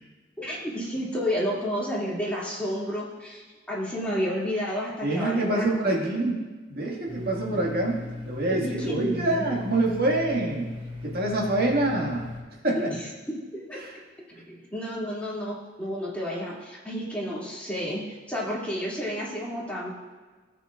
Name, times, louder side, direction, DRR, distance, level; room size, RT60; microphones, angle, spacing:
voice 1, 0.4-6.0 8.5-9.5 12.7-13.0 13.3-13.4 13.7-13.8 14.3-18.0 18.3-19.9, equal, 5° left, -7 dB, 2.3 m, -31 dB
voice 2, 5.0-6.4 6.7-8.0 8.3-10.7 11.0-12.3 12.6-12.9 13.8-13.9, right 2 dB, 55° right, -2 dB, 1.8 m, -26 dB
Domestic sounds home sounds, 7.1-12.4, left 2 dB, 25° right, 1.3 m, -38 dB
16.0 x 7.1 x 2.4 m, 1.3 s
head